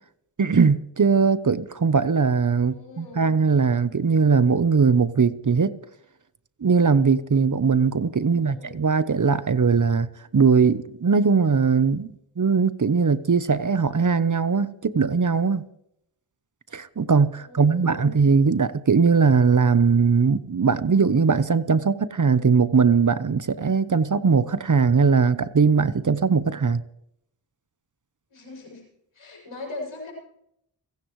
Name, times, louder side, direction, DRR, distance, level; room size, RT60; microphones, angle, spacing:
voice 1, 0.4-5.7 6.6-12.1 12.4-15.6 16.7-26.8, right 5 dB, 40° right, 0.9 m, -20 dB
voice 2, 2.6-3.3 8.1-8.7 17.3-18.2 28.3-28.8 29.1-30.1, left 2 dB, 75° left, 7.2 m, -40 dB
30.0 x 10.0 x 3.2 m
cardioid pair, 45°, 48 cm